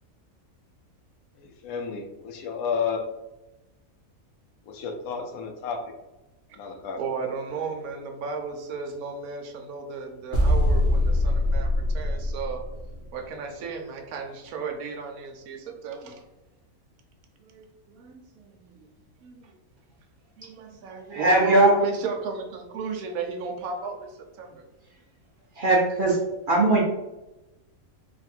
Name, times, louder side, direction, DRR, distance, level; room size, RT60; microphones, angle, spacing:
voice 1, 1.4-3.0 4.6-5.9 6.5-7.0, left 6 dB, 75° left, 4 dB, 1.0 m, -31 dB
voice 2, 7.0-12.6 13.0-16.2 17.4-18.9 19.2-19.5 20.4-24.6 26.1-26.2, right 4 dB, 80° right, 3 dB, 1.1 m, -34 dB
sound 1, 10.3-13.1, left 1 dB, 45° left, 0.8 m, -23 dB
voice 3, 21.1-21.7 25.6-26.2 26.5-26.8, right 2 dB, 55° right, -2 dB, 0.6 m, -19 dB
3.3 x 2.4 x 4.2 m, 0.98 s
omnidirectional pair, 1.5 m